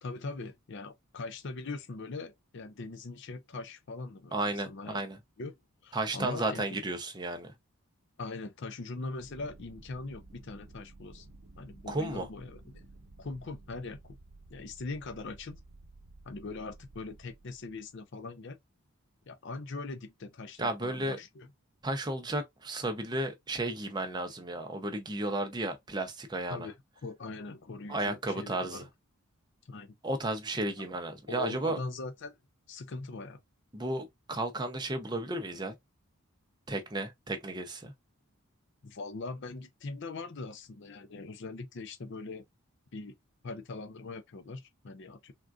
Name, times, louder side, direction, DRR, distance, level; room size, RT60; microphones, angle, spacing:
voice 1, 0.0-5.0 5.4-5.5 5.8-6.7 8.2-11.3 11.6-12.8 13.2-14.2 14.5-15.6 16.2-18.6 19.3-21.5 26.5-26.7 27.0-28.9 29.7-29.9 31.3-32.4 32.7-33.4 38.8-42.4 42.9-43.2 43.4-45.3, left 3 dB, 55° left, 0.5 m, -41 dB
voice 2, 4.3-5.2 5.9-7.5 11.9-12.3 20.6-21.2 21.8-26.7 27.9-28.9 30.0-31.8 33.7-35.7 36.7-37.9, right 2 dB, 20° right, 0.6 m, -33 dB
sound 1, 9.2-17.9, right 2 dB, 65° right, 0.9 m, -54 dB
3.6 x 2.4 x 2.3 m
head